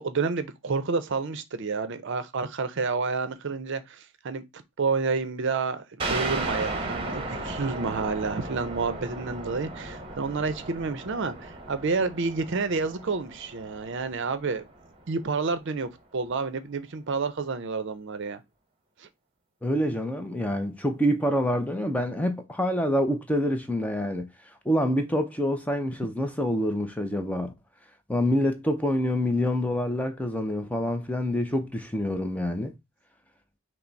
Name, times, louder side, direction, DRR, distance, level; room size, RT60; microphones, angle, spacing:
voice 1, 0.0-4.0 4.2-4.4 4.8-14.7 15.1-18.4, right 4 dB, 55° right, 0.5 m, -29 dB
sound 1, 6.0-15.2, right 2 dB, 25° right, 0.8 m, -35 dB
voice 2, 19.6-24.3 24.7-27.5 28.1-32.7, equal, 5° left, 0.4 m, -26 dB
5.7 x 2.0 x 3.9 m
head